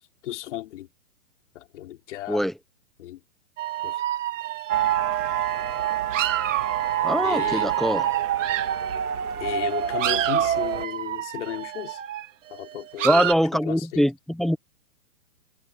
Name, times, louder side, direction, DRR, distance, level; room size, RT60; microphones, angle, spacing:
voice 1, 0.2-0.9 1.5-2.4 3.0-3.2 3.8-4.0 7.2-7.7 9.4-12.0 12.5-14.1, left 14 dB, 50° left, 3.3 m, -34 dB
sound 1, 3.6-9.0 9.5-13.3, right 13 dB, 55° right, 3.7 m, -30 dB
sound 2, 4.7-10.9, right 10 dB, 75° right, 2.2 m, -26 dB
voice 2, 7.0-8.1 13.0-14.6, equal, ahead, 0.7 m, -23 dB
hypercardioid pair, 150°, 45 cm